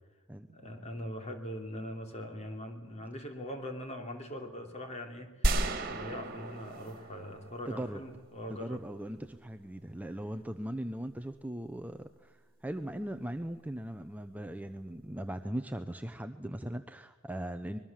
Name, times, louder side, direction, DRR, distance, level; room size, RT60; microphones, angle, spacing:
voice 1, 0.5-8.8, equal, 30° left, 4 dB, 3.3 m, -42 dB
sound 1, 5.4-8.3, right 1 dB, 45° right, 2.2 m, -33 dB
voice 2, 7.7-8.0 8.5-17.8, right 1 dB, 5° right, 8 dB, 0.7 m, -39 dB
24.5 x 21.5 x 7.5 m, 1.1 s
head